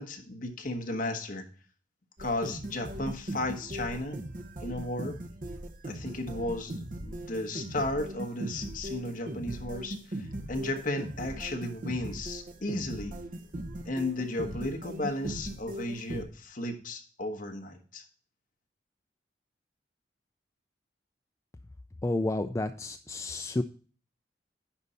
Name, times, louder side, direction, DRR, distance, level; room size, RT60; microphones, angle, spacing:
voice 1, 0.0-1.5 2.2-4.2 4.6-5.2 5.8-13.2 13.8-18.0, left 1 dB, 50° left, 3 dB, 1.2 m, -34 dB
sound 1, 2.2-16.2, right 1 dB, 50° right, 1.0 m, -39 dB
voice 2, 22.0-23.6, left 2 dB, 15° left, 8 dB, 0.3 m, -30 dB
10.5 x 4.1 x 5.5 m, 0.41 s
head